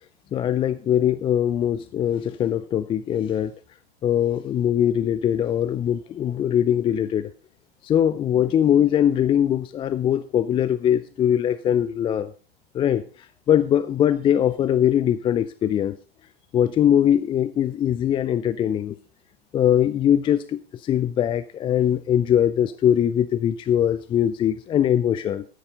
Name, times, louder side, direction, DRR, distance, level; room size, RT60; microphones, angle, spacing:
voice 1, 0.3-3.5 4.0-7.3 7.8-12.3 12.7-13.0 13.5-16.0 16.5-19.0 19.5-25.4, left 10 dB, 15° left, 15 dB, 0.4 m, -21 dB
13.0 x 9.8 x 3.8 m, 0.37 s
figure-of-eight pair, 100°, 31 cm